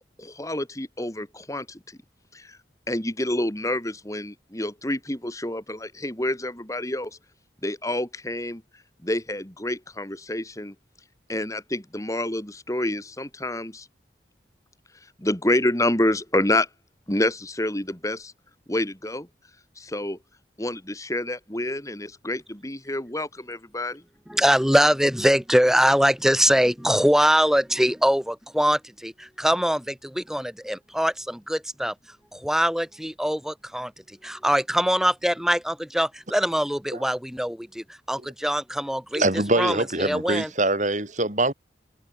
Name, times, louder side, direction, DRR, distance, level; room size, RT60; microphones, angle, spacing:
voice 1, 0.0-1.8 2.3-2.4 2.9-7.1 7.6-8.6 9.0-10.7 11.3-13.8 15.2-16.7 17.1-18.3 18.7-19.3 19.8-20.2 20.6-24.0, left 1 dB, 20° left, 3.1 m, -28 dB
voice 2, 24.3-31.9 32.3-39.2 39.6-40.5, equal, 5° right, 4.3 m, -23 dB
voice 3, 39.1-41.5, right 2 dB, 45° right, 5.2 m, -23 dB
head